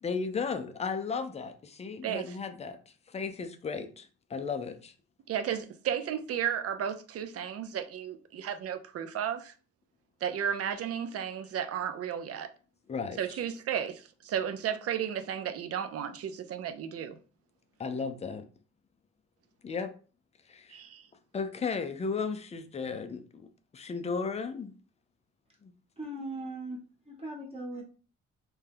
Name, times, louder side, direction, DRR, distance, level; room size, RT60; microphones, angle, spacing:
voice 1, 0.0-2.8 3.1-4.9 12.9-13.4 17.8-18.5 19.6-19.9 20.5-20.8 21.3-24.7 25.6-25.7, left 5 dB, 20° left, 0.4 m, -35 dB
voice 2, 2.0-2.4 5.3-9.5 10.2-12.5 13.2-17.2 20.7-21.0, right 9 dB, 50° right, 0.4 m, -33 dB
voice 3, 26.0-26.8 27.1-27.8, right 1 dB, 20° right, 1.0 m, -39 dB
2.8 x 2.2 x 3.4 m
cardioid pair, 90°, 30 cm